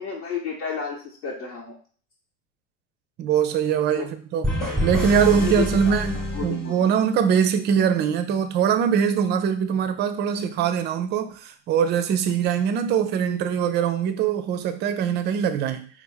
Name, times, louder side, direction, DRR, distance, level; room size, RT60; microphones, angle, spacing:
voice 1, 0.0-1.8 4.0-4.1 5.3-6.0 6.3-6.9, left 6 dB, 65° left, 1.1 m, -32 dB
voice 2, 3.2-15.9, right 7 dB, 30° right, 0.4 m, -22 dB
sound 1, 4.4-7.2, left 1 dB, ahead, 1.1 m, -27 dB
4.4 x 2.1 x 4.2 m
figure-of-eight pair, 70°, 37 cm